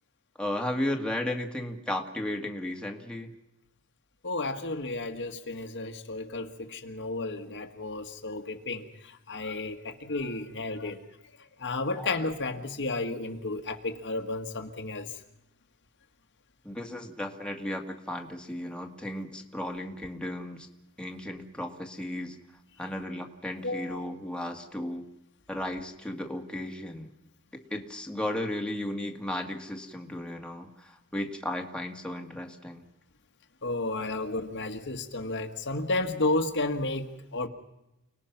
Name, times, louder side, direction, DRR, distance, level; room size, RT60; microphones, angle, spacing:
voice 1, 0.4-3.3 10.8-10.9 12.0-12.1 16.6-20.7 21.0-22.4 22.8-25.0 25.5-27.1 27.5-32.8 34.0-34.2, left 1 dB, 5° left, 2 dB, 1.9 m, -35 dB
voice 2, 4.2-11.0 11.6-15.1 23.6-24.0 33.6-37.5, left 2 dB, 55° left, 5 dB, 1.8 m, -32 dB
29.5 x 19.5 x 6.0 m, 0.92 s
head